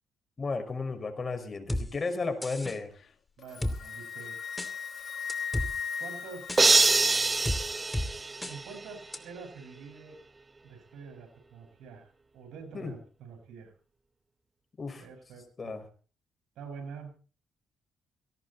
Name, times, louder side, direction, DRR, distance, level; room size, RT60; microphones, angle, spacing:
voice 1, 0.4-2.9 12.7-12.9 14.8-15.1 15.6-15.8, left 3 dB, 35° left, 8 dB, 5.4 m, -33 dB
sound 1, 1.7-1.8 2.4-2.8 3.6-3.8 4.6-4.7 5.3-5.7 6.5-6.6 7.4-7.6 7.9-8.1 8.4-8.5 9.1-9.2, left 1 dB, 10° left, 2.7 m, -31 dB
Wind instrument woodwind instrument, 3.4-7.4, left 7 dB, 55° left, 2.0 m, -37 dB
voice 2, 3.4-4.4 6.0-6.6 8.4-10.2 10.6-13.7 15.0-15.7 16.6-17.1, right 5 dB, 85° right, 5 dB, 6.0 m, -46 dB
sound 2, 6.6-8.9, right 3 dB, 25° right, 0.9 m, -24 dB
18.0 x 17.0 x 4.2 m, 0.39 s
cardioid pair, 90°, 0 cm